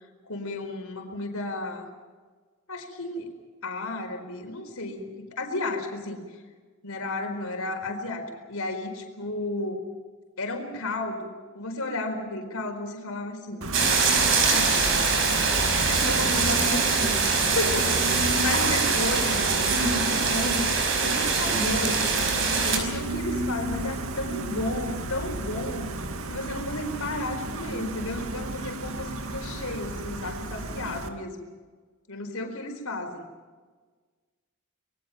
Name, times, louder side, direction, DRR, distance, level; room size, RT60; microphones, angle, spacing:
voice 1, 0.2-1.9 2.7-3.3 3.6-6.2 6.8-9.8 10.4-13.7 14.4-15.1 15.8-20.8 21.0-22.1 22.6-25.9 26.3-31.5 32.1-33.3, left 2 dB, 80° left, 4 dB, 4.4 m, -33 dB
Gull seagull, 13.6-31.1, right 1 dB, 80° right, 2.0 m, -32 dB
sound 1, 13.7-22.8, right 4 dB, 60° right, 5.3 m, -24 dB
26.5 x 22.0 x 5.8 m, 1.4 s
head